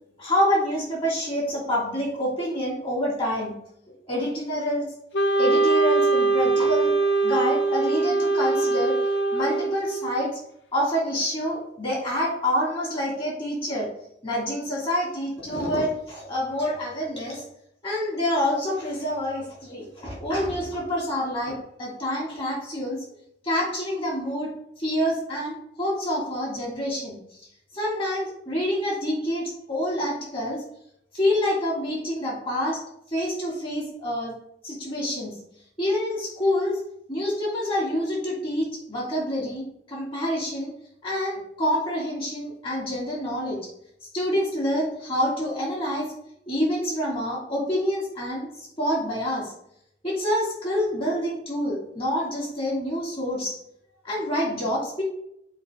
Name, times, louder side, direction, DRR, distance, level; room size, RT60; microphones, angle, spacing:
voice 1, 0.2-3.5 4.1-4.8 5.4-6.9 7.2-9.0 9.3-10.4 10.7-13.9 14.2-17.4 17.8-23.0 23.4-24.5 24.8-27.2 27.7-30.6 31.1-32.8 33.1-34.3 34.6-35.3 35.8-40.7 41.0-43.6 44.1-46.1 46.5-49.5 50.0-53.6 54.0-55.0, equal, 30° left, -4 dB, 2.4 m, -27 dB
Wind instrument woodwind instrument, 5.1-10.3, right 3 dB, 80° left, 0.8 m, -22 dB
7.6 x 2.8 x 4.8 m, 0.77 s
head